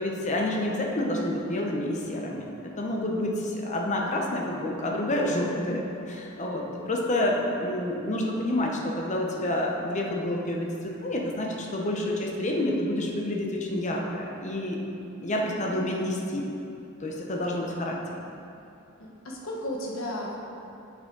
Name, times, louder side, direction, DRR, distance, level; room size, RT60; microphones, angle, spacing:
voice 1, 0.0-2.5 2.8-14.8 15.2-16.5 17.0-18.0, left 1 dB, 35° left, -1 dB, 0.9 m, -28 dB
voice 2, 15.7-16.2 19.0-20.4, left 1 dB, 70° left, -2 dB, 1.3 m, -35 dB
8.0 x 6.4 x 3.9 m, 2.7 s
head